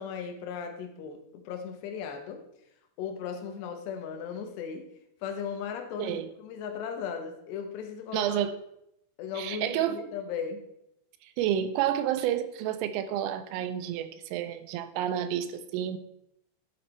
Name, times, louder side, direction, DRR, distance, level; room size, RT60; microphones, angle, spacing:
voice 1, 0.0-2.4 3.0-4.9 5.2-8.4 9.2-10.7, left 7 dB, 70° left, 2.9 m, -37 dB
voice 2, 8.1-8.6 9.4-10.0 11.2-16.0, right 10 dB, 90° right, 3.4 m, -30 dB
12.0 x 6.4 x 4.4 m
omnidirectional pair, 5.8 m